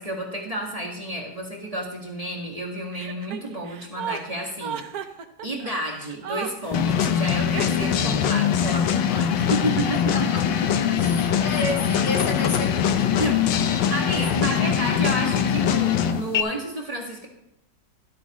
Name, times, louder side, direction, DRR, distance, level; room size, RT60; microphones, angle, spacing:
voice 1, 0.0-4.8 5.4-10.1 11.0-11.2 13.2-13.6 13.9-17.3, right 1 dB, 20° right, -2 dB, 1.7 m, -31 dB
Chuckle chortle, 2.9-8.2, right 8 dB, 60° right, 1.2 m, -35 dB
sound 1, 6.7-16.4, left 8 dB, 85° left, 1.5 m, -22 dB
voice 2, 9.9-14.8, left 2 dB, 60° left, 2 dB, 1.7 m, -33 dB
13.0 x 12.5 x 3.0 m, 0.81 s
omnidirectional pair, 2.0 m